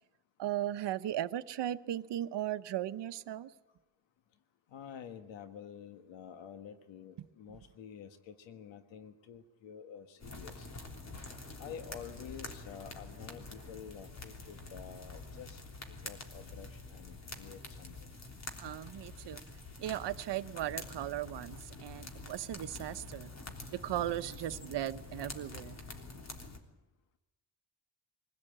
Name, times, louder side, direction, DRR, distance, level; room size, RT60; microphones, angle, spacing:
voice 1, 0.4-3.5 18.6-19.4 19.8-23.3 23.7-25.8, right 12 dB, 70° right, 1.0 m, -37 dB
voice 2, 4.7-10.7 11.6-15.6 16.0-18.1, left 7 dB, 85° left, 1.5 m, -49 dB
sound 1, 10.2-26.6, left 3 dB, 35° left, 3.3 m, -47 dB
24.0 x 16.5 x 8.9 m
cardioid pair, 115°, 44 cm